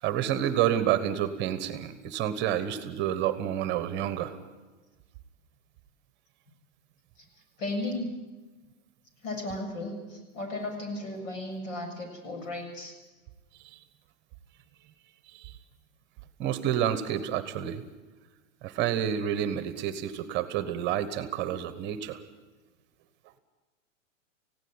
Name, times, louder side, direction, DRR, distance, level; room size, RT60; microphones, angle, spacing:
voice 1, 0.0-4.4 13.6-13.8 15.3-15.6 16.4-17.8 18.6-22.2, right 10 dB, 25° right, 12 dB, 1.2 m, -29 dB
voice 2, 7.6-8.1 9.2-12.9, left 2 dB, 70° left, 4 dB, 7.1 m, -35 dB
19.0 x 16.0 x 8.8 m, 1.2 s
hypercardioid pair, 140°, 39 cm